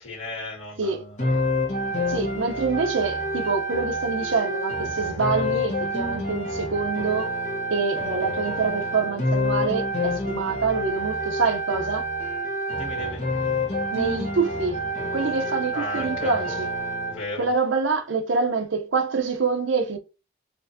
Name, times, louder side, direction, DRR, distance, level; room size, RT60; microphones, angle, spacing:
voice 1, 0.0-1.5 12.7-13.3 15.7-16.4 17.1-17.6, left 2 dB, 75° left, 1.8 m, -36 dB
sound 1, 1.2-17.2, equal, 35° left, 1.0 m, -28 dB
voice 2, 2.1-7.3 7.7-12.0 13.9-16.7 17.4-20.0, right 4 dB, 70° right, 0.7 m, -26 dB
4.4 x 2.6 x 2.6 m
head